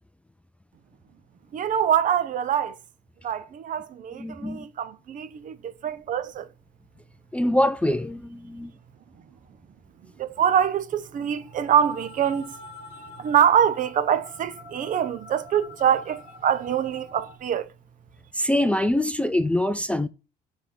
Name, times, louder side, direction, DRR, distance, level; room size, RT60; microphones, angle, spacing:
voice 1, 1.5-2.8 3.2-6.5 10.2-12.6 13.2-17.7, right 9 dB, 50° right, 0.7 m, -24 dB
voice 2, 4.2-4.7 7.3-8.7 18.3-20.1, left 1 dB, 5° left, 0.4 m, -24 dB
sound 1, 10.9-17.4, left 2 dB, 35° right, 1.9 m, -45 dB
6.1 x 3.5 x 5.8 m
cardioid pair, 110°, 17 cm